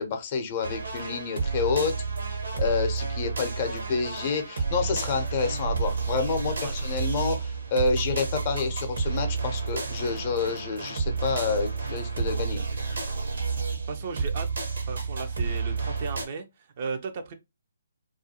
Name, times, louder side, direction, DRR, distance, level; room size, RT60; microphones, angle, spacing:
voice 1, 0.0-1.9 2.3-12.6, left 5 dB, 35° left, 0.6 m, -29 dB
sound 1, 0.6-16.2, right 4 dB, 70° right, 0.9 m, -30 dB
voice 2, 13.5-17.3, right 4 dB, 40° right, 0.4 m, -36 dB
2.4 x 2.2 x 2.7 m
figure-of-eight pair, 140°, 0 cm